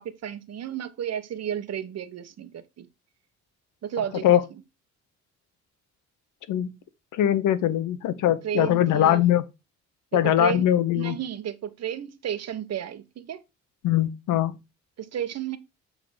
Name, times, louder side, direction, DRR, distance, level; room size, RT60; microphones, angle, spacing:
voice 1, 0.0-2.9 3.8-4.2 8.4-9.2 10.2-10.6 10.9-13.4 15.0-15.6, right 9 dB, 55° right, 1.1 m, -32 dB
voice 2, 7.1-9.5 10.1-11.2 13.8-14.6, left 11 dB, 85° left, 0.9 m, -21 dB
7.4 x 3.8 x 5.0 m
cardioid pair, 90°, 30 cm